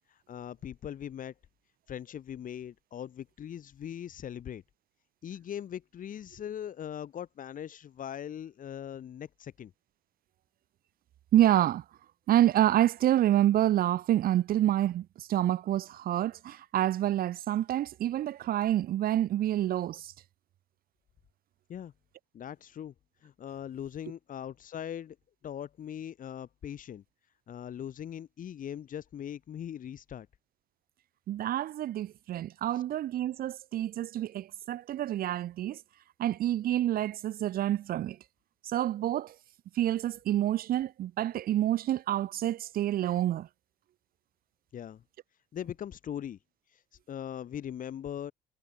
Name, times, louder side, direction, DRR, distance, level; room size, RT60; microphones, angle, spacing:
voice 1, 0.1-1.3 1.9-4.6 5.2-9.7 21.7-21.9 22.3-22.9 23.2-25.2 25.4-27.0 27.5-30.3 32.7-32.8 44.7-45.0 45.5-46.4 46.7-46.8 47.1-48.3, left 9 dB, 60° left, 7.2 m, -40 dB
voice 2, 11.3-11.8 12.3-20.1 31.3-35.8 36.2-38.2 38.6-39.4 39.7-43.5, right 12 dB, 70° right, 2.3 m, -28 dB
cardioid pair, 80°, 16 cm